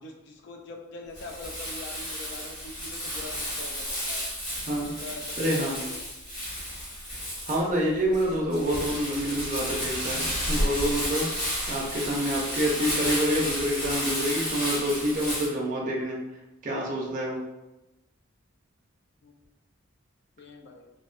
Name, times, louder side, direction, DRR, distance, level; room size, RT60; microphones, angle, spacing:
voice 1, 0.0-4.2 4.7-6.0 19.2-19.3 20.4-20.9, left 2 dB, 55° left, 3 dB, 0.3 m, -43 dB
Crumpling crinkling, 1.1-15.5, equal, 25° left, 1.0 m, -32 dB
voice 2, 5.4-5.8 7.5-16.2 16.6-17.4, equal, 35° right, -2 dB, 0.4 m, -27 dB
2.5 x 2.1 x 2.4 m, 1.0 s
head